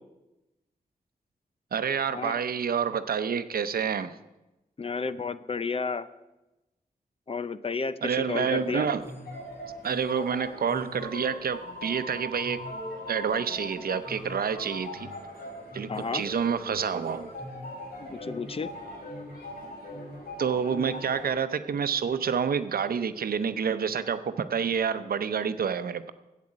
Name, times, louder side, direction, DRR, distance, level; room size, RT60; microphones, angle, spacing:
voice 1, 1.7-4.1 8.0-9.0 9.8-12.6 13.1-15.1 15.7-17.3 20.4-26.1, right 7 dB, 90° right, 12 dB, 0.7 m, -28 dB
voice 2, 4.8-6.1 7.3-8.9 15.9-16.2 18.0-18.7, left 4 dB, 40° left, 14 dB, 0.6 m, -32 dB
sound 1, 8.4-21.3, left 1 dB, 85° left, 5.3 m, -40 dB
10.5 x 8.4 x 8.7 m, 1.0 s
wide cardioid pair, 95°, 15 cm